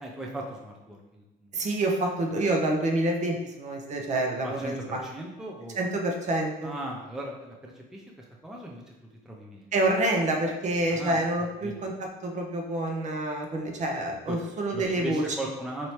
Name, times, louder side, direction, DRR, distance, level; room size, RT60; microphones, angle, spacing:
voice 1, 0.0-1.6 4.4-5.8 6.6-8.1 8.4-8.9 9.2-9.7 10.9-11.2 11.6-11.8 14.3-14.4 14.7-15.9, right 1 dB, 5° right, -1 dB, 0.5 m, -38 dB
voice 2, 1.5-5.0 5.8-6.7 9.7-15.2, right 1 dB, 40° right, 2 dB, 0.7 m, -27 dB
4.3 x 2.8 x 3.2 m, 1.0 s
cardioid pair, 100°, 18 cm